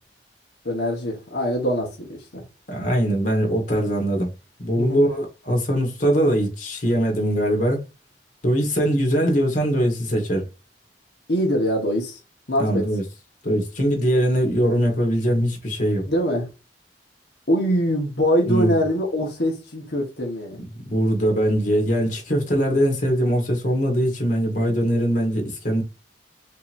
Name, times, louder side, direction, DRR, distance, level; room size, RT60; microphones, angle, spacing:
voice 1, 0.6-2.4 4.8-5.0 11.3-12.2 12.5-12.8 16.1-16.5 17.5-20.6, equal, 65° left, 1.3 m, -23 dB
voice 2, 2.7-4.3 4.6-7.8 8.4-10.5 12.6-13.0 13.4-16.1 18.5-18.8 20.7-25.8, equal, 45° left, 1.6 m, -21 dB
5.3 x 2.9 x 2.6 m
head